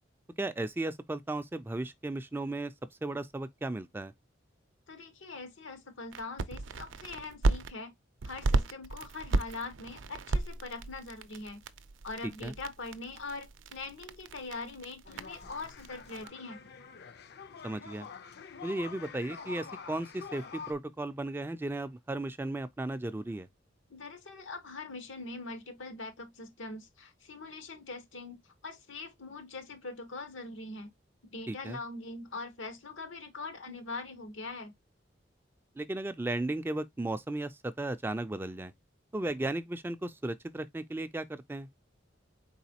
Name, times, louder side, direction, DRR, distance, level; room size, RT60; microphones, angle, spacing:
voice 1, 0.4-2.7 3.0-4.1 12.4-12.5 17.6-18.1 18.6-23.5 31.5-31.8 35.8-38.7 39.1-41.7, right 2 dB, 10° right, 0.3 m, -35 dB
voice 2, 4.9-7.9 8.2-11.6 12.0-16.6 23.9-30.9 31.3-34.7, left 3 dB, 90° left, 1.2 m, -42 dB
sound 1, 6.1-7.7 8.2-16.3, right 2 dB, 80° right, 0.5 m, -34 dB
sound 2, 15.0-20.7, left 5 dB, 55° left, 0.5 m, -46 dB
4.5 x 4.0 x 2.7 m
head